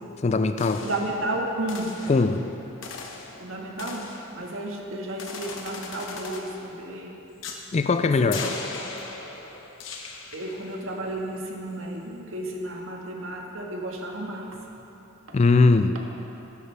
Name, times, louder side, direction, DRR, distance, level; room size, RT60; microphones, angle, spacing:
voice 1, 0.2-0.8 2.1-2.5 7.7-8.4 15.3-16.0, left 3 dB, 35° left, 9 dB, 0.4 m, -20 dB
sound 1, 0.6-4.7 5.2-6.7 7.4-7.7 8.3-10.8, left 4 dB, 70° left, 1.1 m, -39 dB
voice 2, 0.8-1.9 3.4-4.1 4.4-7.2 8.0-8.5 10.3-14.6 15.3-15.4, right 1 dB, 90° right, -1 dB, 1.6 m, -32 dB
15.0 x 12.5 x 3.4 m, 3.0 s
head